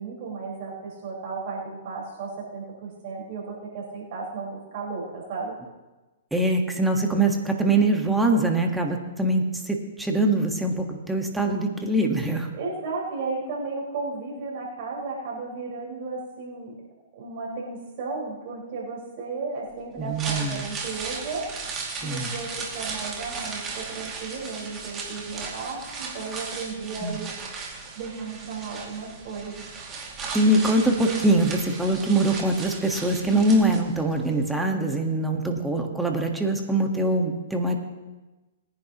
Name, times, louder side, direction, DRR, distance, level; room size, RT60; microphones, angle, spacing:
voice 1, 0.0-5.5 12.5-16.8 17.1-21.6 22.0-27.3 27.9-29.8, right 4 dB, 50° right, -4 dB, 4.9 m, -34 dB
voice 2, 6.3-12.5 20.0-20.6 22.0-22.3 27.0-27.2 30.3-37.8, right 2 dB, 5° right, 2 dB, 1.5 m, -23 dB
sound 1, 20.0-34.2 34.5-34.6, right 4 dB, 25° right, 2.5 m, -36 dB
21.5 x 10.5 x 3.0 m, 1.1 s
hypercardioid pair, 130°, 0 cm